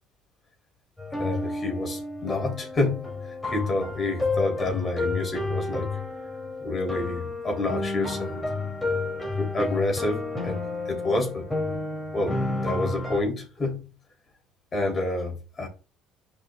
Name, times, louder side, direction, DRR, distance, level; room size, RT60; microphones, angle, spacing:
sound 1, 1.0-13.2, left 3 dB, 10° left, 3.0 m, -31 dB
voice 1, 1.2-5.9 6.6-8.4 9.4-10.6 10.9-11.5 12.1-12.4 12.6-13.9 14.7-15.7, left 2 dB, 30° left, 3.5 m, -28 dB
10.5 x 5.4 x 2.4 m
cardioid pair, 100°, 0 cm